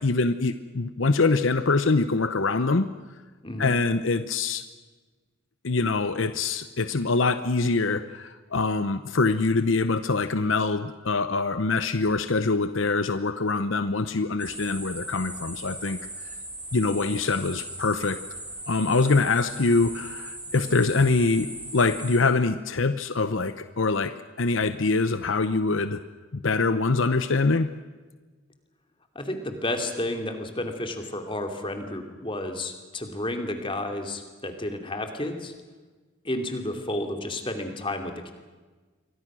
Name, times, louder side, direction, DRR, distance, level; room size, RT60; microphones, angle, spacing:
voice 1, 0.0-2.9 3.6-4.6 5.6-16.0 16.7-18.2 18.7-26.0 26.3-27.7, left 3 dB, 65° left, 11 dB, 0.9 m, -24 dB
voice 2, 3.4-3.7 29.1-35.5 36.2-38.3, left 1 dB, 25° left, 5 dB, 2.8 m, -31 dB
sound 1, 14.4-22.2, right 1 dB, 5° right, 4.7 m, -39 dB
28.0 x 23.5 x 6.3 m, 1.3 s
head